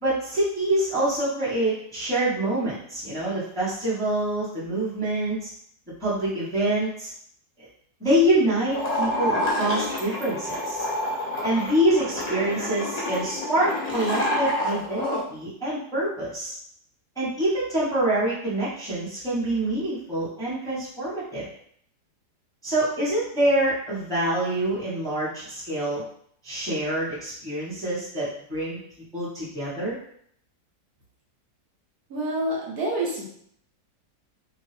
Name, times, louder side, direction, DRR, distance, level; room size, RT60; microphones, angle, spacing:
voice 1, 0.0-5.5 6.0-7.1 7.6-7.7 8.0-10.8 11.4-16.5 17.2-21.4 22.6-26.0 26.4-28.8 29.1-30.0, right 1 dB, 5° left, -9 dB, 0.9 m, -26 dB
sound 1, 8.7-15.2, left 1 dB, 30° left, 0.8 m, -28 dB
voice 2, 32.1-33.2, right 1 dB, 65° right, -3 dB, 1.2 m, -27 dB
2.8 x 2.7 x 3.2 m, 0.66 s
omnidirectional pair, 1.7 m